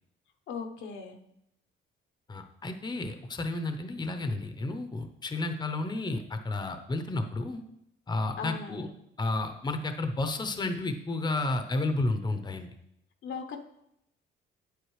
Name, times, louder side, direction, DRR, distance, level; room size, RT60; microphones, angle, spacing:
voice 1, 0.5-1.2 8.4-8.9 13.2-13.6, left 5 dB, 75° left, 5 dB, 0.9 m, -38 dB
voice 2, 2.3-7.6 8.1-8.9 9.2-12.7, left 2 dB, 20° left, 7 dB, 0.7 m, -31 dB
8.3 x 8.1 x 3.2 m, 0.80 s
cardioid pair, 90°, 20 cm